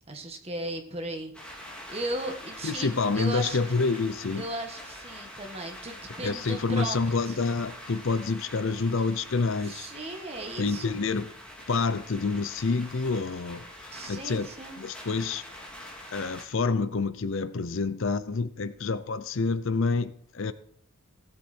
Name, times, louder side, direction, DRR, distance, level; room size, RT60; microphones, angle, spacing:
voice 1, 0.1-3.6 4.3-7.4 9.6-11.0 13.9-15.1, right 1 dB, 25° right, 1.7 m, -37 dB
sound 1, 1.3-16.4, left 1 dB, 5° left, 2.5 m, -45 dB
voice 2, 2.6-4.5 6.2-9.9 10.6-11.3 11.7-14.5 14.8-15.4 16.1-20.5, left 4 dB, 60° left, 0.6 m, -28 dB
16.5 x 8.2 x 4.4 m
head